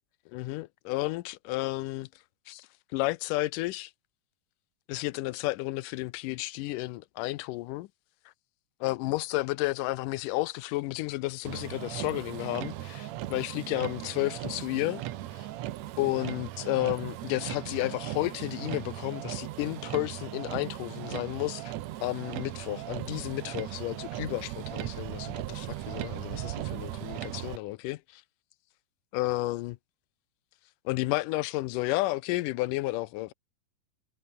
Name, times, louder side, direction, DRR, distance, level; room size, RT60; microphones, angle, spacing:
voice 1, 0.3-2.1 2.5-3.9 4.9-7.9 8.8-15.0 15.3-15.5 16.0-21.7 22.0-28.2 29.1-29.8 30.9-33.3, left 19 dB, 80° left, 2.2 m, -32 dB
Motor vehicle (road), 11.5-27.6, right 14 dB, 70° right, 1.9 m, -38 dB
omnidirectional pair, 3.9 m